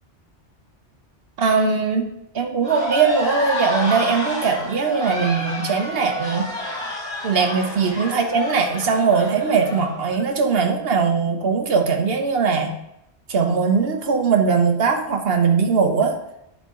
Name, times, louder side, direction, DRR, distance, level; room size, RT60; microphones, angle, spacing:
voice 1, 1.4-2.1 2.3-6.4 7.2-12.7 13.3-16.1, right 5 dB, 60° right, 5 dB, 1.1 m, -20 dB
sound 1, 2.6-10.2, left 1 dB, 5° left, 2.7 m, -29 dB
11.0 x 3.7 x 3.7 m, 0.83 s
omnidirectional pair, 1.2 m